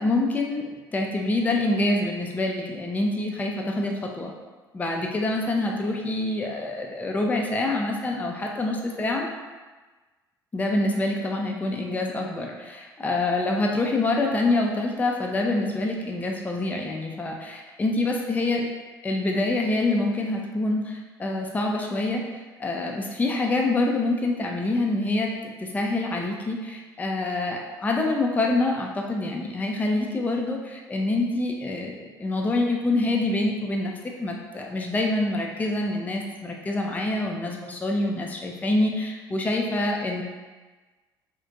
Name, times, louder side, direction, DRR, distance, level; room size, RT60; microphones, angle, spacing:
voice 1, 0.0-4.3 4.7-9.3 10.5-18.7 19.0-22.2 22.6-40.2, left 2 dB, 15° left, 0 dB, 0.4 m, -26 dB
2.4 x 2.1 x 2.6 m, 1.3 s
figure-of-eight pair, 55°, 11 cm